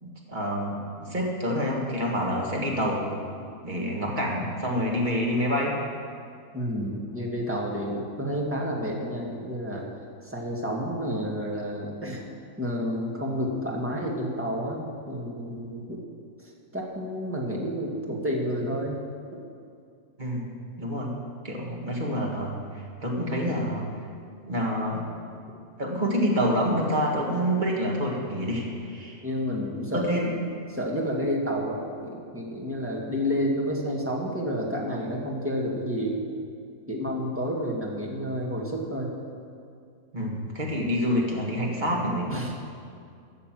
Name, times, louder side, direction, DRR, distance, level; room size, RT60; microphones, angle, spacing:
voice 1, 0.0-0.8 1.1-3.1 3.6-5.8 20.2-20.5 20.8-21.1 21.4-23.9 24.4-25.0 25.8-29.2 29.9-30.3 40.1-42.6, equal, 30° right, -2 dB, 1.9 m, -27 dB
voice 2, 6.5-9.9 10.3-12.2 12.6-16.0 16.7-19.0 29.2-30.3 30.7-36.2 36.9-39.1 42.3-42.6, equal, 10° right, -2 dB, 1.7 m, -30 dB
13.0 x 6.6 x 7.6 m, 2.4 s
omnidirectional pair, 1.5 m